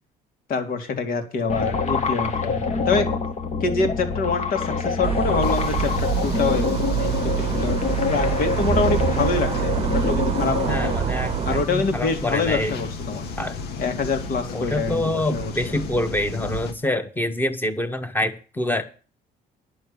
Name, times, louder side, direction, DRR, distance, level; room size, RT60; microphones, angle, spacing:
voice 1, 0.5-2.6 2.9-3.1 3.6-7.8 8.1-10.8 11.4-13.3 13.8-15.5, left 4 dB, 60° left, 2.7 m, -25 dB
sound 1, 1.5-11.0, left 5 dB, 45° left, 1.6 m, -26 dB
sound 2, 5.0-11.6, right 9 dB, 35° right, 0.9 m, -26 dB
sound 3, 5.4-16.7, left 2 dB, 75° left, 2.0 m, -32 dB
voice 2, 10.7-12.7 13.4-13.6 14.5-18.8, left 1 dB, 10° left, 1.7 m, -26 dB
10.5 x 6.3 x 8.6 m
cardioid pair, 110°, 17 cm